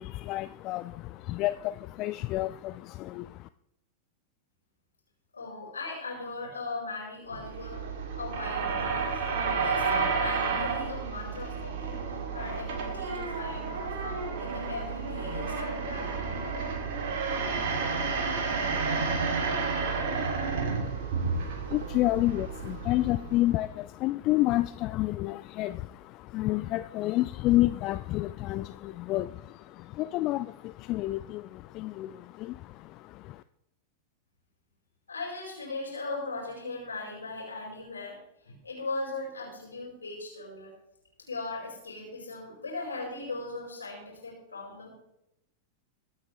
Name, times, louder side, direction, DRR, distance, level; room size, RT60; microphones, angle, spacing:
voice 1, 0.0-3.5 20.8-33.4, left 17 dB, 40° left, 14 dB, 0.4 m, -30 dB
voice 2, 5.3-7.8 8.2-9.2 9.6-12.0 12.3-16.4 35.1-38.2 38.4-40.7 41.3-44.9, left 3 dB, 75° left, -3 dB, 4.8 m, -38 dB
sound 1, 7.3-23.7, right 4 dB, 50° right, 2.6 m, -31 dB
23.0 x 8.7 x 3.2 m, 0.83 s
figure-of-eight pair, 90°, 0 cm